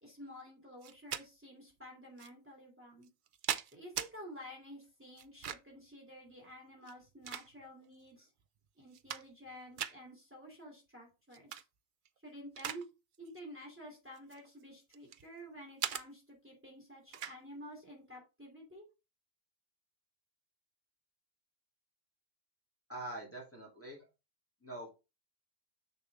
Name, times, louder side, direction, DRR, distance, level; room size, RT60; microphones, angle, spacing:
voice 1, 0.0-3.1 3.7-8.3 8.8-11.6 12.2-12.8 13.2-18.8, equal, 10° right, -1 dB, 2.9 m, -51 dB
Electronics-Flashlight-Plastic-Handled, 0.8-1.3 2.2-2.3 3.0-4.1 5.2-5.8 6.8-7.9 8.4-8.5 8.8-9.5 9.8-10.0 11.3-11.6 12.0-12.8 13.1-13.4 14.1-15.3 15.8-16.0 17.1-17.4, right 9 dB, 55° right, 0.6 m, -40 dB
voice 2, 22.9-24.0 24.6-24.9, right 1 dB, 10° left, -4 dB, 2.9 m, -44 dB
6.7 x 6.6 x 3.5 m, 0.27 s
omnidirectional pair, 1.2 m